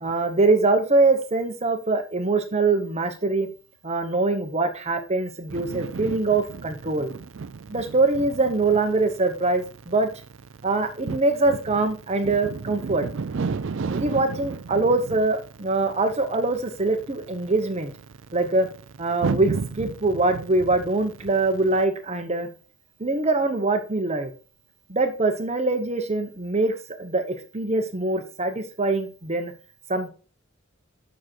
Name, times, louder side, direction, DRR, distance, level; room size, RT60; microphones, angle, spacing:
voice 1, 0.0-3.5 3.8-7.1 7.7-10.1 10.6-13.0 13.9-17.9 18.3-18.7 19.0-22.5 23.0-24.3 24.9-29.5 29.9-30.1, right 3 dB, 30° right, 7 dB, 0.9 m, -23 dB
sound 1, 5.5-21.8, right 4 dB, 65° right, 0.5 m, -35 dB
7.4 x 6.2 x 4.5 m, 0.38 s
head